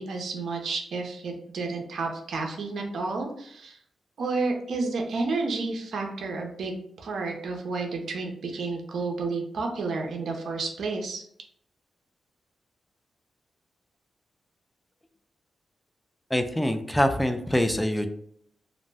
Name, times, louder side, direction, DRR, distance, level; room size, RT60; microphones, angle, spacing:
voice 1, 0.0-3.8 4.2-11.2, right 3 dB, 75° right, 2 dB, 0.6 m, -31 dB
voice 2, 16.3-18.1, left 1 dB, 5° left, 8 dB, 0.3 m, -24 dB
2.5 x 2.1 x 3.3 m, 0.68 s
cardioid pair, 100°, 0 cm